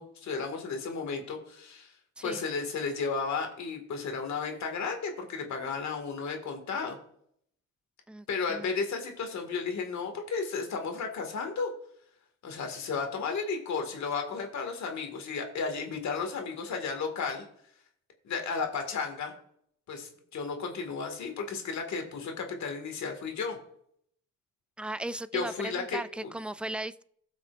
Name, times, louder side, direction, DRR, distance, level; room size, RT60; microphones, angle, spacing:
voice 1, 0.0-1.9 2.2-7.0 8.3-11.7 12.4-17.4 18.2-19.3 19.9-23.6 25.3-26.3, left 5 dB, 65° left, 4 dB, 2.1 m, -33 dB
voice 2, 8.1-8.7 24.8-27.0, right 1 dB, 5° right, 14 dB, 0.3 m, -37 dB
17.0 x 6.0 x 2.5 m, 0.68 s
cardioid pair, 90°, 30 cm